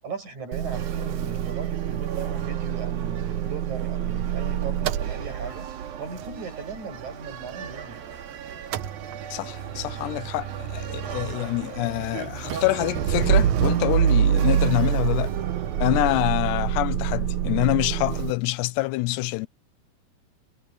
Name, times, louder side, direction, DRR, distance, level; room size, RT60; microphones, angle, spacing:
voice 1, 0.0-5.7 6.0-8.0, right 4 dB, 45° right, 9.4 m, -38 dB
Motor vehicle (road) / Engine starting / Idling, 0.5-8.2 8.5-18.3, right 10 dB, 85° right, 1.6 m, -26 dB
sound 1, 0.7-16.2, right 8 dB, 60° right, 4.1 m, -40 dB
voice 2, 9.3-15.3 15.8-19.5, left 20 dB, 85° left, 2.7 m, -26 dB
omnidirectional pair, 4.8 m